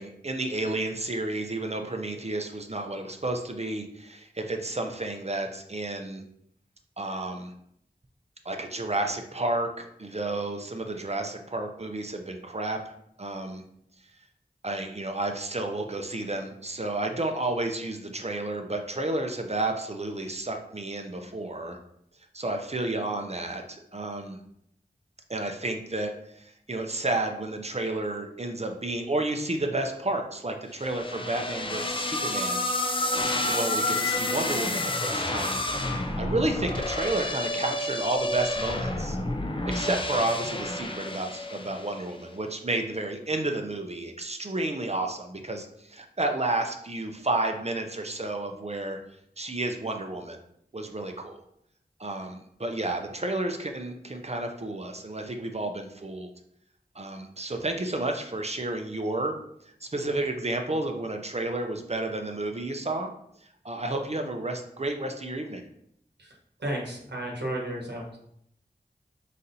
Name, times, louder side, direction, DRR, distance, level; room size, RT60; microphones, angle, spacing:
voice 1, 0.0-6.2 7.0-7.5 8.4-13.6 14.6-21.8 22.3-24.4 25.3-32.6 33.5-35.7 36.2-39.2 39.7-49.0 49.4-50.4 50.7-51.4 52.0-56.3 56.9-59.4 59.8-63.1 63.4-65.6, right 2 dB, 40° right, 4 dB, 0.5 m, -31 dB
sound 1, 30.8-42.1, left 2 dB, 30° left, 0.4 m, -30 dB
voice 2, 66.6-68.2, right 1 dB, 80° right, -2 dB, 1.0 m, -33 dB
4.1 x 4.0 x 2.6 m, 0.73 s
wide cardioid pair, 45°, 17 cm